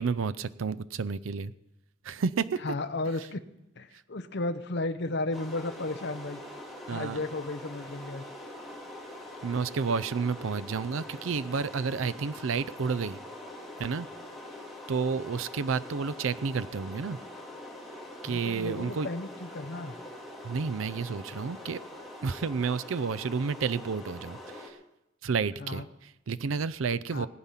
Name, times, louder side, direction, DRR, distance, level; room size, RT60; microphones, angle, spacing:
voice 1, 0.0-1.5 2.0-2.6 6.9-7.2 9.4-13.2 13.8-14.1 14.9-17.2 18.2-19.1 20.4-21.8 22.2-24.8 25.2-27.3, right 5 dB, 80° right, 14 dB, 0.5 m, -30 dB
voice 2, 2.6-3.4 3.8-6.4 6.9-8.2 18.3-20.0 25.6-25.9 27.1-27.3, left 2 dB, 55° left, 8 dB, 0.8 m, -34 dB
sound 1, 5.3-24.7, left 1 dB, ahead, 2.3 m, -44 dB
20.5 x 8.9 x 5.7 m, 0.90 s
head